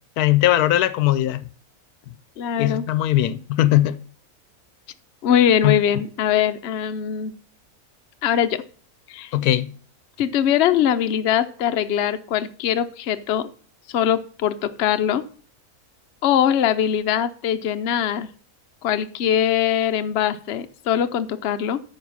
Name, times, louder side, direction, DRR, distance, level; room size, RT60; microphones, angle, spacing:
voice 1, 0.2-1.4 2.6-4.0 5.6-5.8 9.3-9.7, left 14 dB, 80° left, 1.1 m, -19 dB
voice 2, 2.4-2.9 5.2-7.3 8.2-8.6 9.1-9.3 10.2-13.5 13.9-15.2 16.2-18.3 18.8-21.8, left 9 dB, 60° left, 0.8 m, -22 dB
9.4 x 5.0 x 5.5 m
omnidirectional pair, 1.6 m